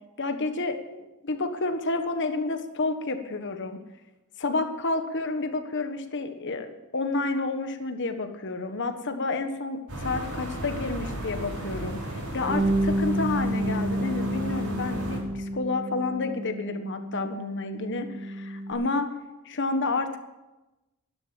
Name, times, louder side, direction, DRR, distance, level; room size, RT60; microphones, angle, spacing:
voice 1, 0.2-3.8 4.4-12.0 12.3-19.1 19.4-20.2, left 3 dB, 55° left, 7 dB, 1.4 m, -30 dB
sound 1, 9.9-15.2, right 1 dB, 90° right, 6.2 m, -35 dB
Bass guitar, 12.5-18.7, right 1 dB, 30° right, 5.1 m, -30 dB
13.0 x 11.5 x 8.6 m, 1.0 s
head